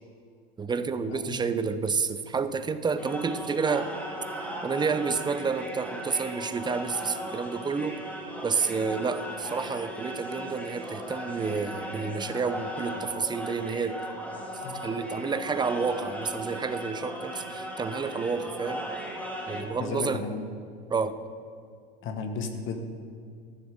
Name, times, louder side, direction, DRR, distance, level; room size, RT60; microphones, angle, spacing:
voice 1, 0.6-3.9 4.6-8.0 8.4-14.0 14.7-18.8 19.5-20.3 20.9-21.2, right 5 dB, 15° right, 11 dB, 0.7 m, -29 dB
voice 2, 1.1-1.4 14.6-14.7 19.8-20.4 22.0-22.8, left 5 dB, 40° left, 6 dB, 1.5 m, -34 dB
sound 1, 3.0-19.6, equal, 5° left, 2.4 m, -37 dB
14.0 x 7.1 x 6.6 m, 2.2 s
hypercardioid pair, 95°, 31 cm